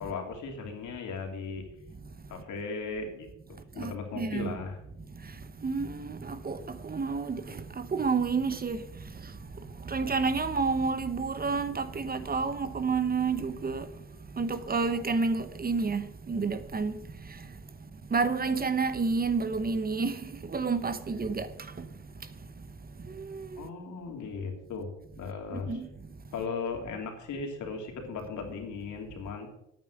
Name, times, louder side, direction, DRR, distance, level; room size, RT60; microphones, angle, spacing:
voice 1, 0.0-1.6 2.3-3.3 3.7-4.8 23.6-24.9 25.2-25.8 26.3-29.5, left 4 dB, 75° left, 3.2 m, -37 dB
voice 2, 3.8-4.5 5.1-22.7 23.0-23.7 25.5-25.9, right 4 dB, 30° right, 1.0 m, -31 dB
9.5 x 9.2 x 6.7 m
cardioid pair, 90°, 30 cm